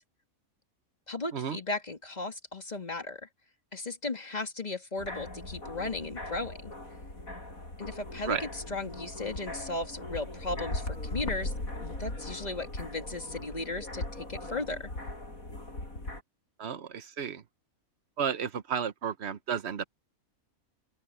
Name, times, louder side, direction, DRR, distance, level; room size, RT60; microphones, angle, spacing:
voice 1, 1.1-3.3 3.7-6.7 7.8-11.5 11.8-14.9, left 2 dB, 30° left, 2.3 m, -36 dB
sound 1, 5.0-16.2, left 2 dB, 75° left, 7.6 m, -39 dB
voice 2, 16.6-17.4 18.2-19.8, right 7 dB, 50° right, 1.2 m, -32 dB
open air
omnidirectional pair, 1.5 m